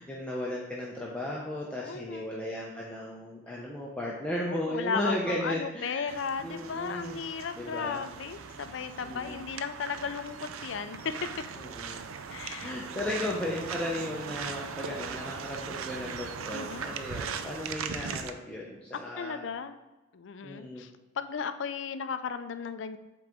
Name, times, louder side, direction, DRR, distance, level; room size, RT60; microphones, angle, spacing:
voice 1, 0.0-6.1 6.4-7.2 7.6-8.0 9.0-9.5 11.6-12.0 12.6-19.5 20.4-20.9, left 1 dB, 5° left, -4 dB, 0.6 m, -35 dB
voice 2, 1.8-2.3 4.5-11.1 12.3-13.4 16.5-16.9 19.2-19.7 20.1-23.0, left 6 dB, 65° left, 10 dB, 0.4 m, -35 dB
sound 1, 6.1-18.3, right 6 dB, 85° right, 0.4 m, -39 dB
7.9 x 3.8 x 3.5 m, 1.1 s
head